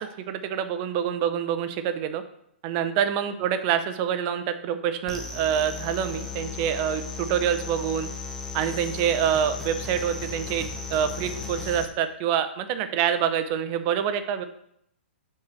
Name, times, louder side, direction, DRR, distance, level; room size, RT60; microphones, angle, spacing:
voice 1, 0.0-2.2 2.6-8.1 8.5-14.4, right 9 dB, 35° right, 10 dB, 0.7 m, -26 dB
sound 1, 5.1-11.9, left 4 dB, 5° left, 0.8 m, -35 dB
5.8 x 4.7 x 6.2 m, 0.73 s
hypercardioid pair, 130°, 6 cm